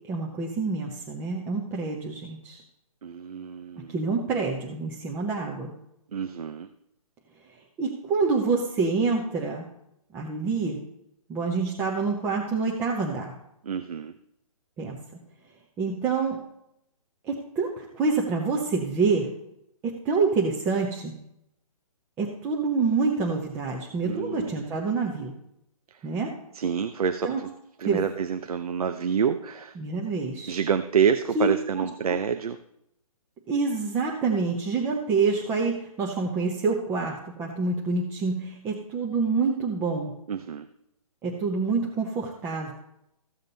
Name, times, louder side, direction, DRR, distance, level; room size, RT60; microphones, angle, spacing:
voice 1, 0.1-2.6 3.9-5.7 7.8-9.6 10.1-10.8 11.3-13.3 14.8-15.0 15.8-16.4 17.2-19.3 19.8-21.1 22.2-25.3 26.0-26.3 27.2-27.4 27.9-28.0 29.8-30.6 31.3-31.5 31.8-31.9 33.5-40.1 41.2-42.7, right 4 dB, 10° right, -1 dB, 0.8 m, -27 dB
voice 2, 3.0-3.9 6.1-6.7 13.6-14.1 24.0-24.6 26.5-27.5 27.8-29.7 30.5-32.6 40.3-40.7, right 7 dB, 80° right, 9 dB, 0.7 m, -27 dB
14.5 x 7.4 x 4.0 m, 0.79 s
hypercardioid pair, 160°, 19 cm